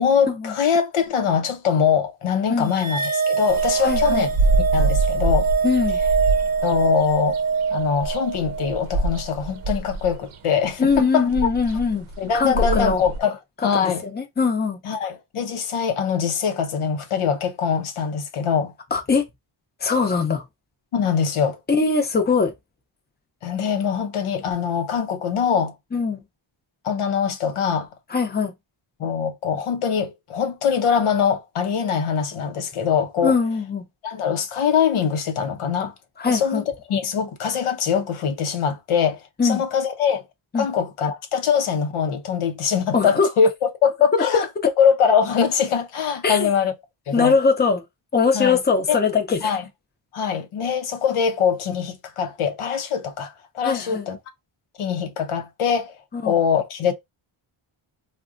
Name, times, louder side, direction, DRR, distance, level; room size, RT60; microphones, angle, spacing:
voice 1, 0.0-4.3 4.6-5.5 6.6-7.4 7.7-11.5 12.2-14.0 14.8-18.7 20.9-21.6 23.4-25.7 26.8-27.9 29.0-33.4 34.0-35.9 36.3-40.2 40.5-44.5 44.8-46.7 47.1-47.3 48.3-48.6 48.9-49.0 49.4-49.6 50.1-54.2 54.8-56.0 56.2-56.9, left 7 dB, 90° left, 0.7 m, -23 dB
sound 1, 2.7-9.3, right 5 dB, 20° right, 0.7 m, -24 dB
sound 2, 3.5-13.2, right 2 dB, 80° right, 0.6 m, -25 dB
voice 2, 3.8-4.2 5.6-6.0 10.8-12.1 12.3-13.1 13.8-14.8 18.9-19.2 19.8-20.4 21.7-22.5 25.9-26.2 28.1-28.5 33.2-33.8 36.2-36.6 39.4-39.6 40.5-40.7 42.9-43.3 46.2-46.5 47.1-47.8 48.1-49.5 53.6-54.1 56.1-56.4, left 5 dB, 20° left, 0.6 m, -21 dB
3.5 x 2.2 x 2.5 m
wide cardioid pair, 95°, 49 cm